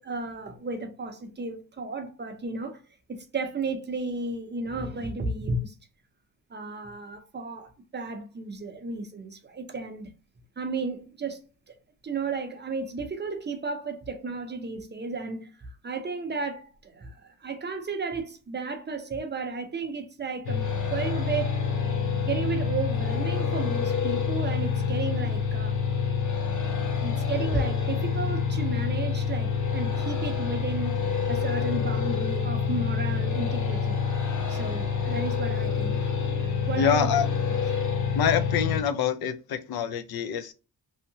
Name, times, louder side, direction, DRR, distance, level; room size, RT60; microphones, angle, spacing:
voice 1, 0.0-2.8 3.1-5.7 6.5-10.1 10.6-11.4 11.7-11.8 12.0-15.5 15.8-21.6 22.3-25.8 27.0-34.0 34.5-36.0 36.7-37.1, right 3 dB, 30° right, 0.5 m, -33 dB
sound 1, 20.4-38.8, left 6 dB, 55° left, 0.8 m, -27 dB
voice 2, 36.8-37.3 38.1-40.5, left 8 dB, 80° left, 0.5 m, -26 dB
2.8 x 2.7 x 2.7 m
wide cardioid pair, 150°, 37 cm